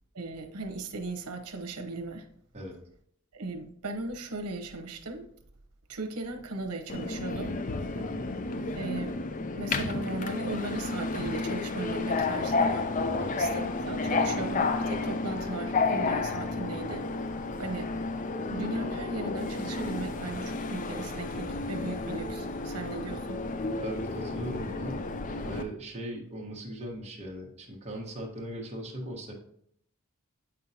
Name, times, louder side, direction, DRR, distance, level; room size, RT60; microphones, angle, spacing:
voice 1, 0.1-2.3 3.3-5.3 5.9-7.6 8.7-9.1 9.6-12.9 13.4-17.1 17.6-17.9 18.5-23.4, right 2 dB, 85° right, 4 dB, 0.9 m, -37 dB
Subway metro underground, 6.9-25.6, left 3 dB, 35° left, 0.4 m, -31 dB
voice 2, 7.9-8.2 13.2-13.4 23.7-25.0 25.3-29.3, right 1 dB, 30° right, -1 dB, 1.2 m, -39 dB
7.9 x 5.6 x 2.7 m, 0.68 s
head